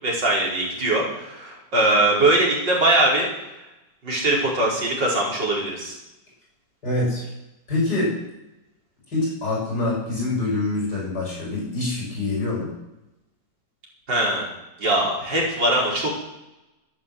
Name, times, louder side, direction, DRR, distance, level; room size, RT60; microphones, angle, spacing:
voice 1, 0.0-3.3 4.0-5.9 14.1-14.5 14.8-16.1, right 1 dB, 80° right, -3 dB, 5.7 m, -21 dB
voice 2, 6.8-7.2 7.7-8.2 9.1-12.7, left 2 dB, 65° left, -5 dB, 8.3 m, -25 dB
13.5 x 13.5 x 7.9 m, 0.93 s
omnidirectional pair, 1.9 m